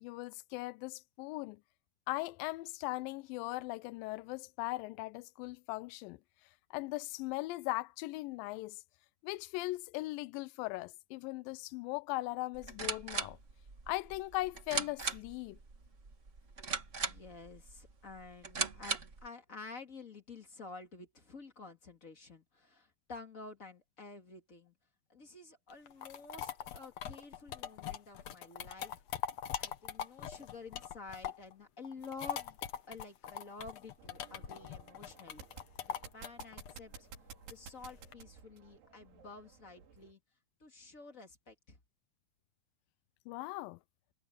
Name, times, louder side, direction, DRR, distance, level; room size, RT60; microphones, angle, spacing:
voice 1, 0.0-1.6 2.1-6.2 6.7-8.8 9.2-13.4 13.9-15.6 43.3-43.8, left 20 dB, 85° left, 2.0 m, -39 dB
sound 1, 12.5-19.3, right 4 dB, 50° right, 0.8 m, -39 dB
voice 2, 17.0-24.7 25.1-29.0 29.6-32.6 32.9-35.5 35.9-37.1 37.5-40.2 40.6-41.8, left 4 dB, 25° left, 2.0 m, -50 dB
sound 2, 25.7-31.5 31.8-38.1, left 9 dB, 60° left, 1.9 m, -42 dB
sound 3, 34.0-40.1, right 6 dB, 85° right, 5.2 m, -54 dB
omnidirectional pair, 4.6 m